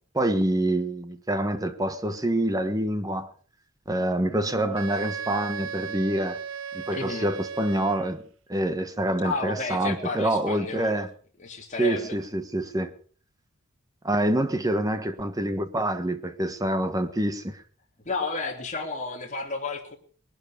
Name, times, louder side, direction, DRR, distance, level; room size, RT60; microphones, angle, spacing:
voice 1, 0.1-3.3 3.9-6.4 6.7-8.2 8.5-11.1 11.8-12.9 14.0-17.6, right 1 dB, 15° right, 1.2 m, -26 dB
Wind instrument woodwind instrument, 4.7-8.3, right 7 dB, 65° right, 0.9 m, -36 dB
voice 2, 6.9-7.3 9.2-11.0 11.4-12.1 18.0-20.0, left 3 dB, 35° left, 3.0 m, -32 dB
20.5 x 12.5 x 5.0 m
head